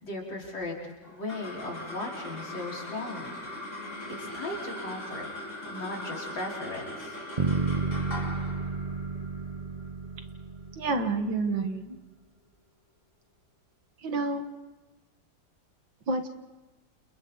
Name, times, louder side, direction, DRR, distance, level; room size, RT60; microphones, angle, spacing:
voice 1, 0.0-3.3 4.1-5.3 5.6-7.2, left 2 dB, 80° left, -3 dB, 5.5 m, -37 dB
sound 1, 1.0-11.6, left 1 dB, 40° left, 6.6 m, -40 dB
Bass guitar, 7.4-11.4, right 4 dB, 30° right, 0.7 m, -32 dB
voice 2, 10.8-12.0 14.0-14.5 16.1-16.3, right 3 dB, 85° right, 6 dB, 2.4 m, -29 dB
29.5 x 29.0 x 4.1 m, 1.2 s
omnidirectional pair, 2.0 m